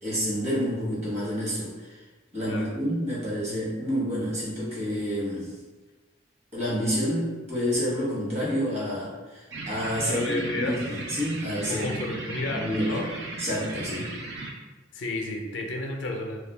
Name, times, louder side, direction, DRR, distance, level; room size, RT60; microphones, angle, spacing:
voice 1, 0.0-2.1 2.3-5.6 6.5-12.0 12.5-13.0 13.4-14.1, equal, 35° right, -7 dB, 1.0 m, -29 dB
sound 1, 9.5-14.5, right 2 dB, 75° right, 0.5 m, -36 dB
voice 2, 10.1-10.8 11.7-13.1 14.9-16.4, left 2 dB, 75° left, 2 dB, 0.4 m, -31 dB
2.3 x 2.2 x 3.2 m, 1.2 s
head